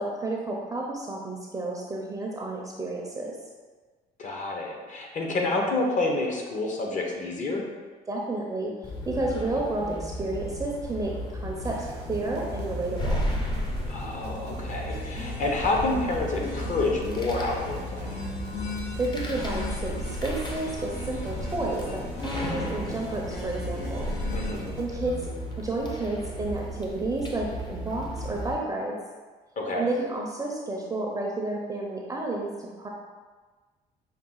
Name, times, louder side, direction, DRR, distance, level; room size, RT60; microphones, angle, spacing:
voice 1, 0.0-3.3 8.1-13.3 19.0-24.1 24.8-25.2 25.6-29.0 29.7-32.9, right 2 dB, 20° right, -1 dB, 0.6 m, -31 dB
voice 2, 4.2-7.6 13.9-18.1 24.3-24.7 29.6-29.9, left 2 dB, 45° left, 0 dB, 0.9 m, -28 dB
sound 1, 8.8-28.5, equal, 25° left, 0.7 m, -34 dB
sound 2, 11.6-24.9, right 5 dB, 80° right, 0.6 m, -46 dB
sound 3, 14.9-24.5, left 3 dB, 85° left, 0.8 m, -40 dB
5.6 x 2.3 x 3.8 m, 1.4 s
cardioid pair, 110°, 17 cm